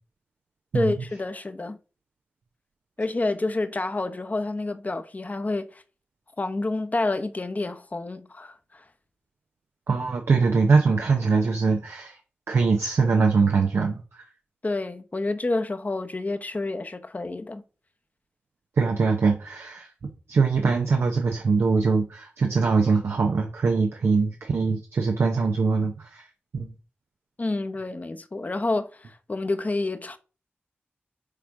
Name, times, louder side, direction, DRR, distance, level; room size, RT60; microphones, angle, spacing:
voice 1, 0.7-1.8 3.0-5.8 6.4-8.8 14.6-17.6 27.4-30.2, left 2 dB, 40° left, 0.8 m, -29 dB
voice 2, 9.9-12.2 12.5-14.3 18.8-19.9 20.3-26.3 26.5-26.7, right 4 dB, 90° right, 0.8 m, -22 dB
6.6 x 3.7 x 4.7 m
cardioid pair, 50°, 4 cm